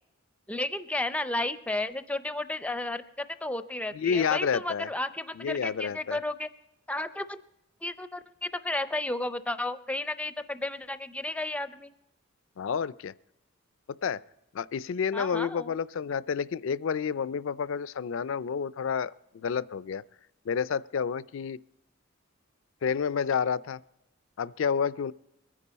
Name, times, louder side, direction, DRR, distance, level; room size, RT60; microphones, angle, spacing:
voice 1, 0.5-6.5 6.9-7.4 7.8-11.9 15.1-15.8, left 2 dB, 5° left, 11 dB, 0.4 m, -33 dB
voice 2, 3.9-4.9 5.3-6.2 12.6-13.1 14.0-14.2 14.5-20.0 20.5-21.6 22.8-23.8 24.4-25.1, left 6 dB, 65° left, 18 dB, 0.4 m, -29 dB
23.0 x 10.0 x 4.1 m, 0.90 s
head